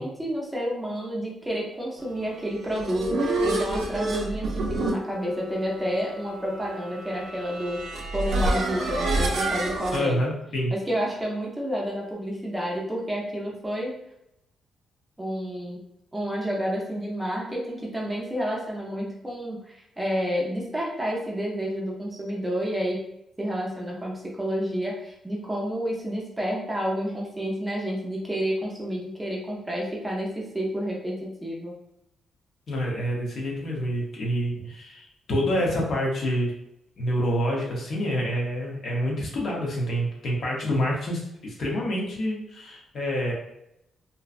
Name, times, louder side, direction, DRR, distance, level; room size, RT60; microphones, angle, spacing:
voice 1, 0.0-7.8 8.1-10.2 10.7-13.9 15.2-15.8 16.1-23.0 23.4-31.7, equal, 10° right, -3 dB, 0.5 m, -30 dB
sound 1, 2.5-10.0, right 2 dB, 60° right, 0.4 m, -28 dB
voice 2, 9.9-10.7 32.7-36.5 37.0-43.3, equal, 50° left, -2 dB, 0.7 m, -27 dB
2.6 x 2.1 x 2.4 m, 0.80 s
cardioid pair, 145°, 0 cm